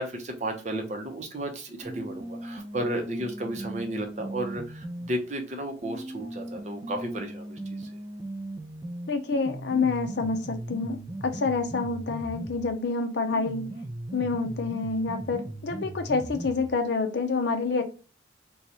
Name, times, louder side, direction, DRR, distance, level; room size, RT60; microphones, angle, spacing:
voice 1, 0.0-7.9, right 1 dB, 40° right, 0.7 m, -33 dB
sound 1, 1.8-5.1 5.8-12.8 13.3-16.8, right 1 dB, 20° right, 0.3 m, -38 dB
voice 2, 9.1-13.8 14.1-17.8, left 4 dB, 60° left, 0.5 m, -28 dB
2.9 x 2.3 x 4.0 m
head